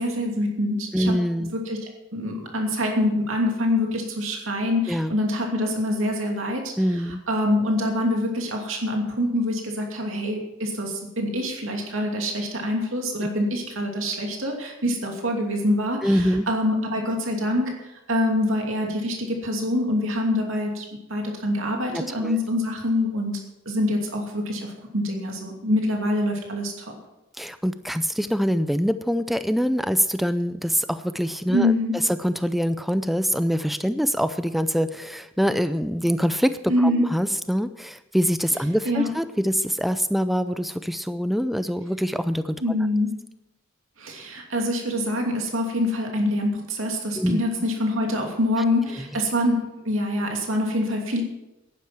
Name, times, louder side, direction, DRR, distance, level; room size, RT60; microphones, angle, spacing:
voice 1, 0.0-1.1 1.7-1.8 2.1-6.7 7.3-23.4 23.7-24.7 24.9-27.0 31.5-31.9 36.7-37.0 38.8-39.1 42.6-43.1 44.0-51.2, left 1 dB, 75° right, 2 dB, 2.7 m, -25 dB
voice 2, 0.9-1.6 4.9-5.1 6.8-7.2 16.0-16.5 21.9-22.4 27.4-31.7 32.2-42.6 47.2-47.5 49.0-49.2, equal, ahead, 12 dB, 0.4 m, -24 dB
10.5 x 10.0 x 7.5 m, 0.93 s
head